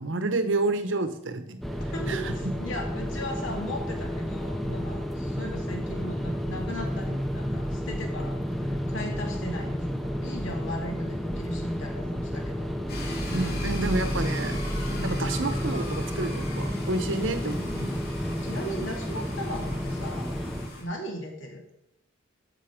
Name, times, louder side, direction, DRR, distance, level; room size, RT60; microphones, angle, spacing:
voice 1, 0.0-1.6 1.8-2.3 13.3-14.6 15.0-17.9, right 2 dB, 65° right, 9 dB, 1.0 m, -29 dB
sound 1, 1.6-20.7, equal, ahead, 0.7 m, -31 dB
voice 2, 1.9-12.7 14.9-15.2 18.4-20.3 20.7-21.6, left 1 dB, 65° left, 1 dB, 2.5 m, -37 dB
sound 2, 12.9-20.8, left 1 dB, 50° left, 2.9 m, -37 dB
13.0 x 5.4 x 5.1 m, 0.81 s
head